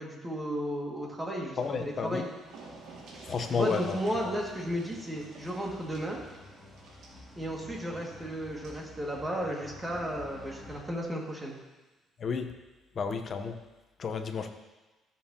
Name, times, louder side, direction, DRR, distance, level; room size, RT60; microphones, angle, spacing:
voice 1, 0.0-2.2 3.5-6.2 7.4-11.5, equal, 15° right, -2 dB, 2.0 m, -34 dB
sound 1, 1.2-10.8, left 2 dB, ahead, 2.3 m, -52 dB
voice 2, 1.6-2.2 3.3-4.0 4.3-4.4 12.2-12.5 13.0-13.6 14.0-14.5, left 5 dB, 45° left, 7 dB, 0.8 m, -31 dB
sound 2, 1.7-1.8 2.0-8.9 10.2-10.3 10.7-10.8, right 3 dB, 75° right, 2.1 m, -51 dB
14.0 x 7.1 x 2.9 m, 1.1 s
cardioid pair, 110°, 0 cm